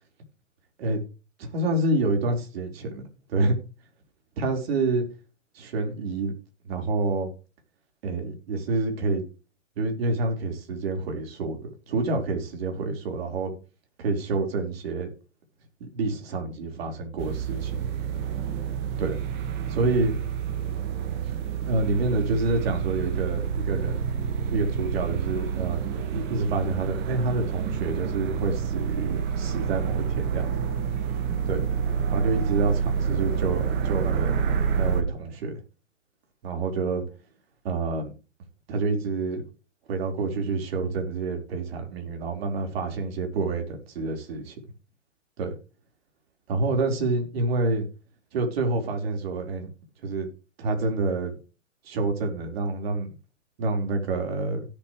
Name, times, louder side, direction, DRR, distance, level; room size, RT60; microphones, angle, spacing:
voice 1, 1.4-3.0 3.3-3.6 4.4-5.0 5.5-6.3 6.7-7.3 8.0-9.2 9.8-13.5 14.0-15.1 15.8-17.9 19.0-19.2 19.7-20.1 21.6-24.1 24.5-30.5 31.5-31.6 32.1-34.4 34.7-35.5 36.4-37.0 37.6-38.1 38.7-39.4 39.9-44.6 45.4-45.5 46.5-47.9 48.3-49.7 50.0-50.3 50.6-51.3 51.8-53.1 53.6-54.7, right 3 dB, 55° right, 4.4 m, -28 dB
sound 1, 17.2-35.0, right 7 dB, 30° right, 1.7 m, -28 dB
17.0 x 7.2 x 3.2 m
hypercardioid pair, 130°, 37 cm